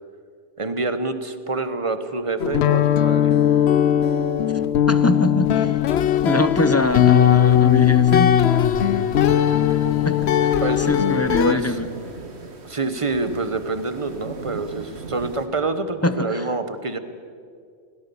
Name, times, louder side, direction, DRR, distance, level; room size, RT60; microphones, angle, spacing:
voice 1, 0.6-3.3 10.6-11.8 12.6-17.0, right 3 dB, 30° right, 10 dB, 1.2 m, -27 dB
sound 1, 2.4-11.5, left 10 dB, 65° left, 0.9 m, -18 dB
voice 2, 4.9-5.7 6.2-8.4 10.0-10.3 10.9-11.9 16.0-16.4, left 2 dB, 15° left, 11 dB, 0.7 m, -23 dB
sound 2, 6.8-15.5, right 3 dB, 65° right, 1.9 m, -38 dB
21.0 x 17.5 x 7.1 m, 2.2 s
omnidirectional pair, 1.2 m